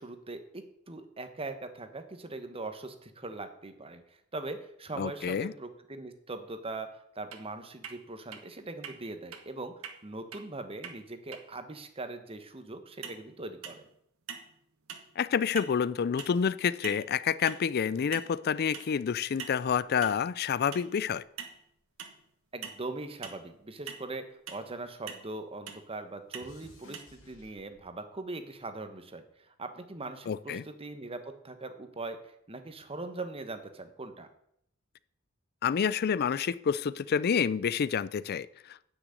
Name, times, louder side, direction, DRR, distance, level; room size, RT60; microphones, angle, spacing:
voice 1, 0.0-4.0 4.3-6.9 7.1-9.7 10.0-13.8 22.5-32.2 32.5-34.3, right 2 dB, 25° right, 8 dB, 1.1 m, -41 dB
voice 2, 5.0-5.5 15.2-21.2 30.3-30.6 35.6-38.9, left 7 dB, 50° left, 18 dB, 0.4 m, -28 dB
sound 1, 7.3-7.4 7.8-8.0 8.3-8.4 8.8-9.0 9.3-9.4 9.8-10.0 10.3-10.4 10.8-11.0 11.3-11.4 13.0-13.2 13.6-13.9 14.3-14.5 14.9-15.1 15.6-15.8 16.2-16.4 16.8-17.1 17.5-17.7 18.1-18.4 18.7-18.9 19.4-19.6 20.0-20.2 20.7-20.9 21.4-21.6 22.0-22.2 22.6-22.8 23.2-23.4 23.9-24.0 24.5-24.6 25.1-25.3 25.7-25.8 26.3-26.5 26.9-27.0, right 7 dB, 80° right, 1.4 m, -42 dB
sound 2, 20.3-22.1 22.4-25.1 25.3-28.1 28.9-29.3, left 1 dB, 65° left, 2.5 m, -60 dB
10.0 x 6.1 x 8.2 m, 0.73 s
head